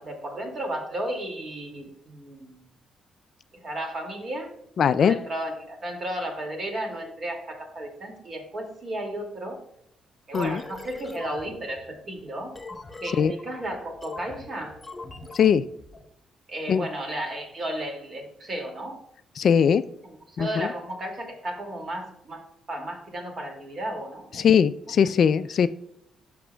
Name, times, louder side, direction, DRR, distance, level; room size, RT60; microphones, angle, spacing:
voice 1, 0.0-2.7 3.6-4.5 4.9-9.6 10.3-12.6 13.0-14.8 16.5-19.0 20.0-24.5 25.0-25.1, right 1 dB, 45° right, 2 dB, 2.1 m, -34 dB
voice 2, 4.8-5.2 10.3-10.6 13.2-13.3 15.3-15.6 16.7-16.9 19.4-19.8 20.4-20.7 24.3-25.7, left 7 dB, 60° left, 15 dB, 0.3 m, -20 dB
sound 1, 10.3-16.1, left 3 dB, 20° left, 1.1 m, -43 dB
11.0 x 5.9 x 2.2 m, 0.76 s
cardioid pair, 90°, 0 cm